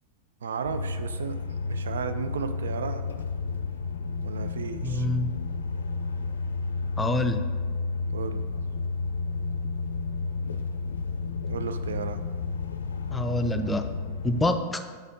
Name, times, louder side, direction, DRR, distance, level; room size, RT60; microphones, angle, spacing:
voice 1, 0.4-1.4 1.7-3.0 4.2-5.1 8.1-8.4 11.5-12.2, right 6 dB, 65° right, 10 dB, 0.4 m, -33 dB
sound 1, 0.6-14.5, left 4 dB, 70° left, 0.4 m, -31 dB
voice 2, 4.8-5.3 7.0-7.4 13.1-13.9 14.2-14.8, left 1 dB, 10° left, 7 dB, 0.5 m, -26 dB
6.8 x 4.1 x 5.2 m, 1.5 s
figure-of-eight pair, 90°, 0 cm